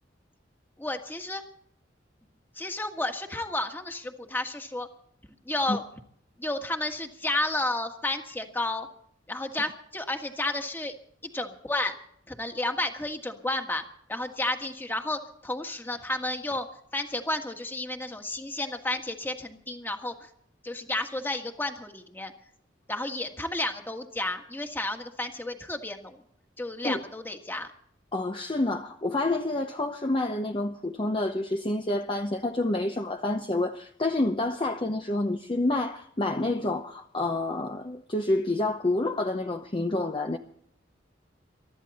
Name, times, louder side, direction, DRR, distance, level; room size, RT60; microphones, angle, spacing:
voice 1, 0.8-1.4 2.5-4.9 5.4-5.8 6.4-8.9 9.3-10.9 11.3-12.0 12.3-13.8 14.1-16.7 16.9-20.3 20.6-22.3 22.9-26.2 26.6-27.7, left 2 dB, 10° left, 1.6 m, -32 dB
voice 2, 28.1-40.4, left 2 dB, 30° left, 0.8 m, -28 dB
23.5 x 13.0 x 4.2 m
head